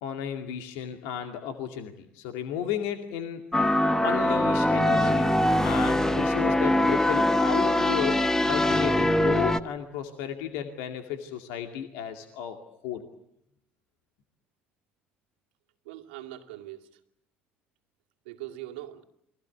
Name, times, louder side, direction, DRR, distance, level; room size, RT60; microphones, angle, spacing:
voice 1, 0.0-3.4 4.0-5.3 5.6-13.0, left 9 dB, 70° left, 2.3 m, -33 dB
sound 1, 3.5-9.6, left 1 dB, 10° left, 1.3 m, -23 dB
voice 2, 15.8-17.0 18.3-19.0, right 14 dB, 80° right, 2.2 m, -41 dB
29.0 x 22.0 x 8.5 m
hypercardioid pair, 65°, 6 cm